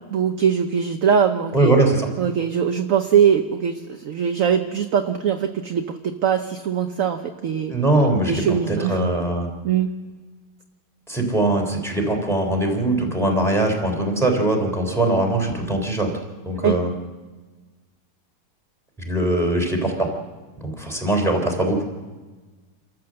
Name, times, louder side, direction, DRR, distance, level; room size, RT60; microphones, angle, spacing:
voice 1, 0.1-1.8 2.2-7.7 8.3-9.1 9.6-9.9 16.6-16.7, right 7 dB, 55° right, 6 dB, 1.1 m, -21 dB
voice 2, 1.5-2.1 7.7-9.5 11.1-16.1 16.5-16.9 19.0-20.1 20.6-21.8, right 2 dB, ahead, 1 dB, 3.5 m, -21 dB
28.0 x 14.0 x 7.7 m, 1.3 s
omnidirectional pair, 1.9 m